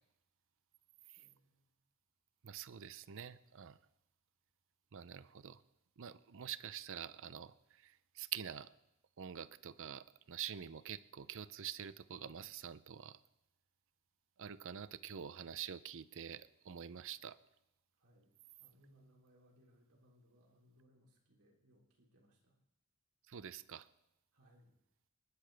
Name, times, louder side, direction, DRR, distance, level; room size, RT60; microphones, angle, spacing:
voice 1, 1.2-1.8 18.0-18.3 18.6-22.6 24.3-24.8, equal, 85° right, -1 dB, 3.5 m, -68 dB
voice 2, 2.4-3.8 4.9-5.6 6.0-8.7 9.2-13.2 14.4-17.4 23.3-23.9, right 9 dB, 65° right, 16 dB, 0.5 m, -47 dB
27.5 x 11.5 x 3.4 m, 0.83 s
head